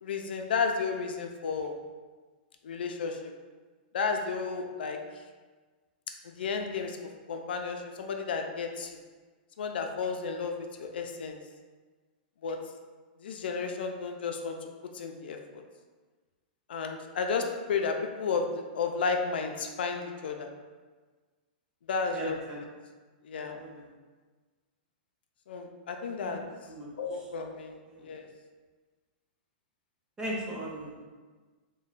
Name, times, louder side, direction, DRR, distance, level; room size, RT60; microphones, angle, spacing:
voice 1, 0.0-1.7 2.6-3.3 3.9-5.0 6.2-7.0 7.3-9.0 9.6-11.4 12.4-12.6 13.2-14.6 14.9-15.6 16.7-18.5 18.7-20.5 21.9-22.4 23.2-23.6 25.5-26.5 27.0-28.3, left 5 dB, 80° left, 4 dB, 0.4 m, -32 dB
voice 2, 22.1-22.6 23.3-23.9 26.2-26.3 26.7-26.9 27.9-28.1 30.2-31.0, right 1 dB, 15° right, -4 dB, 0.6 m, -38 dB
3.0 x 2.1 x 4.0 m, 1.4 s
hypercardioid pair, 155°, 5 cm